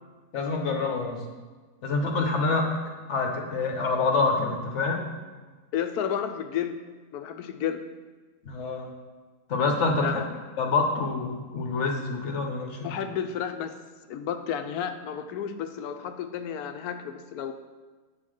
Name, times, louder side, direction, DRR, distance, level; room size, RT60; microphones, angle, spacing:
voice 1, 0.3-1.2 1.8-2.7 3.1-5.0 8.4-8.9 9.5-10.2 10.6-13.0, left 3 dB, 55° left, 2 dB, 1.1 m, -26 dB
voice 2, 5.7-6.8 7.1-7.8 10.0-10.3 12.8-13.7 14.1-17.5, left 8 dB, 85° left, 8 dB, 1.1 m, -31 dB
8.2 x 3.8 x 6.3 m, 1.4 s
omnidirectional pair, 1.6 m